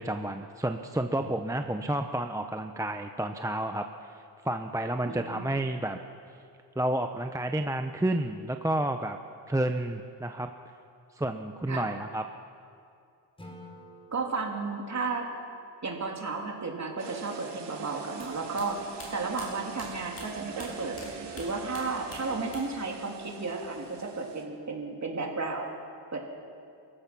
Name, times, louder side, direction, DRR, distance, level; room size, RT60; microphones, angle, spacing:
voice 1, 0.0-4.1 4.4-6.0 6.8-9.2 9.5-10.5 11.1-12.2, right 1 dB, 10° right, 6 dB, 0.7 m, -30 dB
voice 2, 5.1-5.5 11.7-11.9 14.1-15.3 15.8-18.8 19.1-21.0 21.3-25.7 26.1-26.3, right 3 dB, 40° right, 0 dB, 3.3 m, -33 dB
Acoustic guitar / Strum, 13.4-16.5, equal, 15° left, 4.0 m, -52 dB
sound 1, 17.0-24.4, right 6 dB, 75° right, 2.4 m, -43 dB
sound 2, 18.1-21.1 21.3-22.9 23.1-23.9, left 1 dB, 35° left, 6.9 m, -46 dB
28.0 x 15.5 x 6.1 m, 2.5 s
cardioid pair, 105°, 42 cm